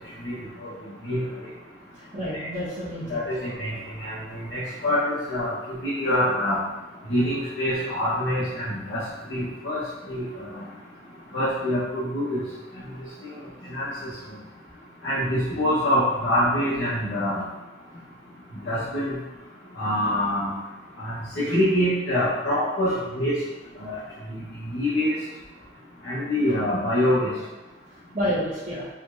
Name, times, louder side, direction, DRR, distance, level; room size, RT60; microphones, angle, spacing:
voice 1, 1.9-3.2 3.7-3.8 28.1-28.9, equal, 45° right, -14 dB, 1.3 m, -29 dB
voice 2, 3.1-5.5 5.8-6.6 7.1-9.0 9.3-9.8 10.1-10.6 11.3-12.4 13.7-14.1 15.0-17.4 18.7-19.1 19.7-20.5 21.0-23.4 23.8-23.9 24.3-25.2 26.0-27.3, left 1 dB, 70° left, -11 dB, 1.1 m, -25 dB
4.2 x 3.2 x 2.6 m, 1.1 s
head